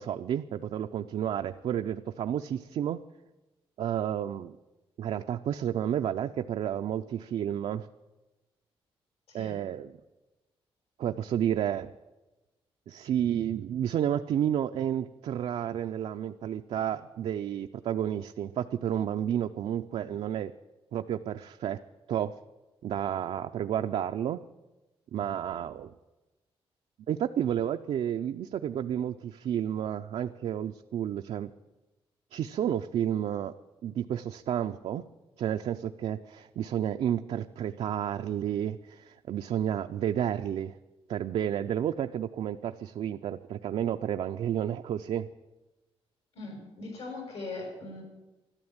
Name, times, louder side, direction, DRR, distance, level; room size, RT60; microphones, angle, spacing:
voice 1, 0.0-3.0 3.8-4.6 5.0-7.9 9.3-9.9 11.0-11.9 12.9-20.5 20.9-21.8 22.1-22.3 22.8-24.4 25.1-25.9 27.1-31.5 32.3-33.5 33.8-35.0 35.4-40.8 41.1-45.3, right 10 dB, 75° right, 6 dB, 0.5 m, -31 dB
voice 2, 46.3-48.0, left 3 dB, 85° left, 2 dB, 6.1 m, -40 dB
13.0 x 12.0 x 8.8 m, 1.1 s
wide cardioid pair, 155°, 10 cm